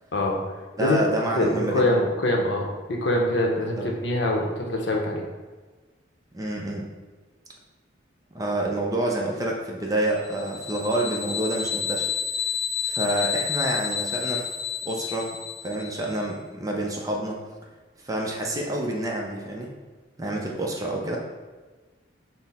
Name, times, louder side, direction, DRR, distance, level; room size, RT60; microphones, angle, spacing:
voice 1, 0.8-1.9 3.8-3.9 6.3-6.9 8.3-12.1 12.8-14.4 14.8-15.4 15.6-17.4 18.0-19.7 20.2-21.2, right 1 dB, 20° right, -1 dB, 0.4 m, -28 dB
voice 2, 1.3-5.2, left 1 dB, 60° left, 0 dB, 0.7 m, -24 dB
sound 1, 10.2-16.1, left 8 dB, 35° right, 0.8 m, -30 dB
5.8 x 2.0 x 4.1 m, 1.3 s
head